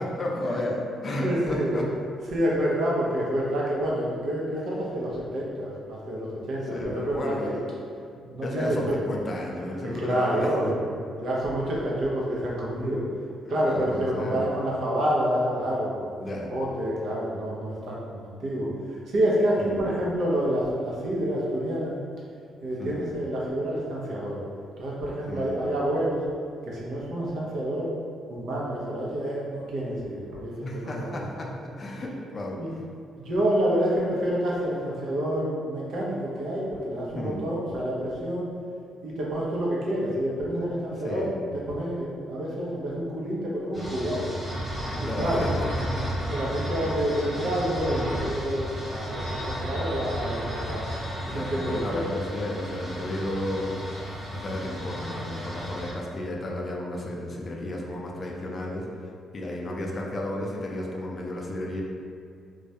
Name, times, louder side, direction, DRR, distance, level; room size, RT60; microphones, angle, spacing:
voice 1, 0.0-1.9 6.7-7.7 8.4-10.5 13.4-14.5 16.2-16.5 19.6-19.8 22.8-23.1 25.3-25.6 30.6-32.6 37.2-37.4 41.0-41.4 44.9-46.3 51.2-53.8 54.3-58.9 59.3-61.8, left 1 dB, 35° left, -1 dB, 0.4 m, -33 dB
voice 2, 1.2-1.8 2.3-7.5 8.3-9.0 9.8-10.8 11.2-13.0 13.5-16.2 16.5-21.9 22.6-24.4 24.8-26.2 26.7-27.9 28.3-31.2 32.5-32.7 33.2-38.5 39.0-44.3 45.0-45.5 46.3-50.8 51.3-52.0, equal, 65° right, -5 dB, 0.5 m, -28 dB
sound 1, 43.7-55.9, equal, 5° right, 1.0 m, -33 dB
2.2 x 2.0 x 2.7 m, 2.3 s
cardioid pair, 90°, 0 cm